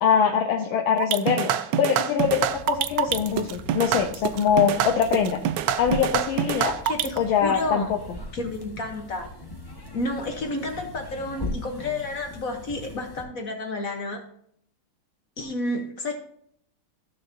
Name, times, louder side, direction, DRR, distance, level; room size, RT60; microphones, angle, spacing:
voice 1, 0.0-5.4 5.8-6.7 7.2-8.2, left 7 dB, 75° left, 3 dB, 1.6 m, -23 dB
sound 1, 1.0-7.2, right 10 dB, 75° right, 1.0 m, -25 dB
sound 2, 2.2-13.2, left 2 dB, 20° left, 0.7 m, -40 dB
voice 2, 6.8-7.9 8.3-9.3 9.9-14.2 15.4-16.2, left 2 dB, 50° left, 4 dB, 1.2 m, -30 dB
14.5 x 6.5 x 2.7 m, 0.67 s
omnidirectional pair, 2.3 m